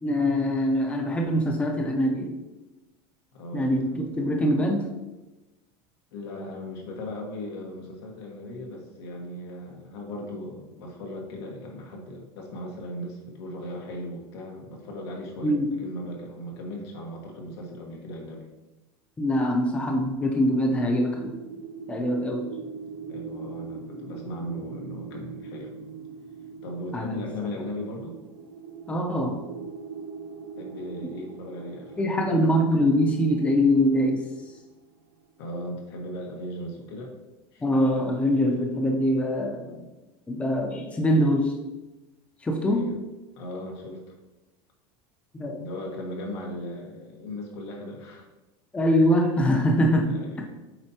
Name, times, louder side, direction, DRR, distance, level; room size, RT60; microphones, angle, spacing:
voice 1, 0.0-2.3 3.5-4.9 15.4-15.7 19.2-21.4 21.9-22.5 26.9-27.3 28.9-29.5 32.0-34.3 37.6-39.9 40.3-41.5 42.4-42.9 45.3-45.6 48.7-50.5, equal, 10° left, 2 dB, 0.6 m, -23 dB
voice 2, 3.3-4.0 6.1-18.4 23.1-25.7 26.6-28.2 30.6-32.3 35.4-37.1 37.5-37.6 42.6-42.9 43.3-44.1 45.4-48.2 50.0-50.4, left 1 dB, 90° left, 0 dB, 1.5 m, -37 dB
sound 1, 20.1-35.1, right 5 dB, 90° right, 1.6 m, -42 dB
7.7 x 4.4 x 2.8 m, 1.1 s
supercardioid pair, 150°, 13 cm